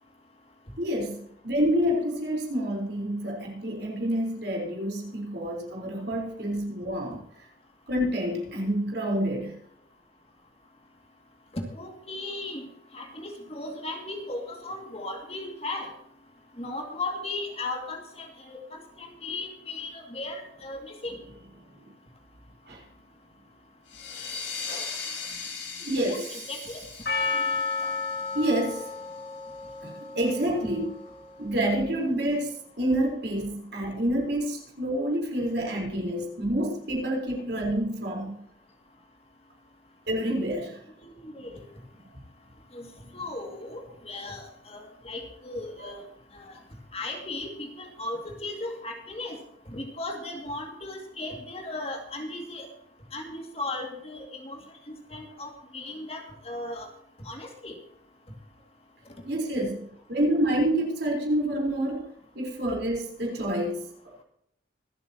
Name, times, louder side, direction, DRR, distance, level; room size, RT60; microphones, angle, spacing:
voice 1, 0.8-7.5 7.9-9.6 21.7-21.9 22.7-22.8 25.1-25.4 25.8-26.5 27.8-27.9 28.3-28.9 29.8-30.9 31.4-38.4 40.1-40.8 45.8-45.9 59.3-64.2, right 1 dB, 60° right, 4.2 m, -28 dB
voice 2, 11.5-12.7 12.9-15.9 16.6-21.2 26.0-26.2 26.5-26.9 40.3-40.5 41.0-41.6 42.7-42.9 43.1-46.0 46.3-46.5 46.9-49.4 49.7-52.7 53.1-54.6 54.9-56.9 57.2-57.8, left 2 dB, 30° left, 2.3 m, -36 dB
sound 1, 23.9-29.2, left 5 dB, 80° left, 3.9 m, -39 dB
Percussion, 27.1-31.5, left 4 dB, 55° left, 2.2 m, -32 dB
25.0 x 8.9 x 2.9 m
head